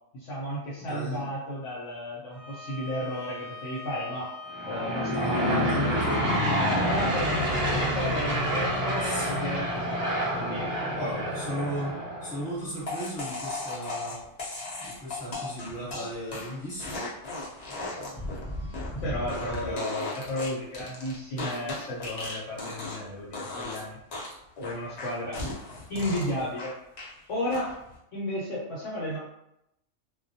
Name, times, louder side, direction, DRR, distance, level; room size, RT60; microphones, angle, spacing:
voice 1, 0.1-4.3 4.7-6.2 6.8-10.7 11.0-11.3 19.0-24.0 24.6-25.4 25.9-26.7 27.3-27.7 28.1-29.2, equal, 70° left, -6 dB, 0.9 m, -33 dB
voice 2, 0.8-1.2 5.1-6.5 9.0-9.3 10.9-12.0 12.2-14.2 14.8-17.1 17.7-18.2 19.3-20.1, equal, 20° left, -8 dB, 0.9 m, -36 dB
Bowed string instrument, 2.3-7.6, left 1 dB, 65° right, 0.8 m, -42 dB
Aircraft / Engine, 4.5-12.5, equal, 25° right, 0.8 m, -28 dB
sound 1, 12.9-23.1 23.3-23.8 24.1-27.1 27.5-27.9, left 2 dB, 50° left, 0.5 m, -36 dB
2.2 x 2.1 x 2.6 m, 0.82 s
omnidirectional pair, 1.4 m